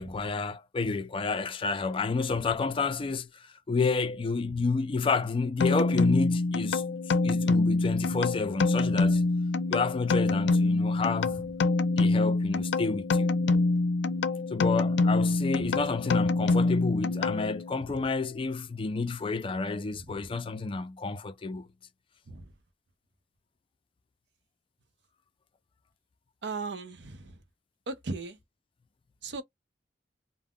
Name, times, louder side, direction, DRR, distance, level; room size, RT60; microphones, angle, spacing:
voice 1, 0.0-6.8 7.2-9.2 9.7-11.4 12.0-13.3 14.5-21.7, left 4 dB, 30° left, 0.4 m, -30 dB
sound 1, 5.6-17.8, left 3 dB, 90° left, 0.4 m, -26 dB
voice 2, 26.4-27.2 27.9-28.4 29.2-29.4, right 3 dB, 75° right, 0.6 m, -36 dB
2.3 x 2.1 x 3.5 m
head